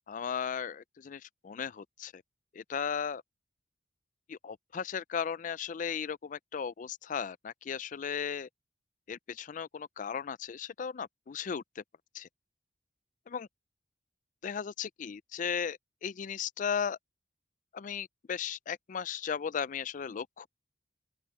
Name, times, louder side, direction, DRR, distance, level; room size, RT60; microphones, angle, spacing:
voice 1, 0.1-2.2 2.5-3.2 4.3-8.5 9.1-11.8 12.1-12.3 13.3-13.5 14.4-17.0 17.7-20.5, left 7 dB, 45° left, 0.4 m, -36 dB
open air
head